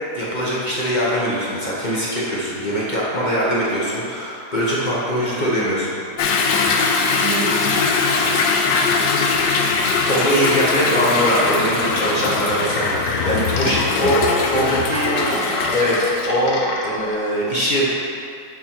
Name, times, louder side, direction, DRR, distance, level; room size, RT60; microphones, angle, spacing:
voice 1, 0.1-6.0 10.1-13.0 13.2-14.2 14.5-15.2 15.7-17.9, equal, 40° left, -7 dB, 0.7 m, -21 dB
Toilet flush / Drip / Trickle dribble, 6.2-16.3, left 4 dB, 70° left, 1.1 m, -21 dB
voice 2, 7.2-8.4 14.9-15.7, right 4 dB, 70° right, 0 dB, 1.0 m, -29 dB
sound 1, 9.3-17.2, left 2 dB, 85° left, 1.6 m, -29 dB
8.7 x 3.8 x 4.4 m, 2.5 s
omnidirectional pair, 2.3 m